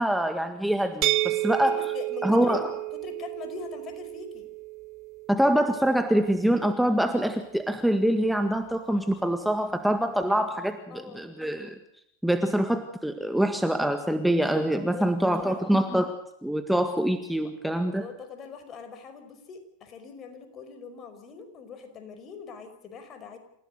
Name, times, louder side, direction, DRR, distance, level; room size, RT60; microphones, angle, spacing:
voice 1, 0.0-1.8 2.2-2.7 5.3-11.8 12.2-16.1 16.4-18.0, right 1 dB, ahead, 7 dB, 1.8 m, -25 dB
sound 1, 1.0-6.8, right 19 dB, 45° right, 1.0 m, -32 dB
voice 2, 1.6-2.7 2.9-4.5 10.9-11.4 14.7-15.7 17.4-23.4, left 5 dB, 35° left, 8 dB, 5.2 m, -43 dB
28.5 x 16.5 x 6.6 m, 0.73 s
hypercardioid pair, 100°, 0 cm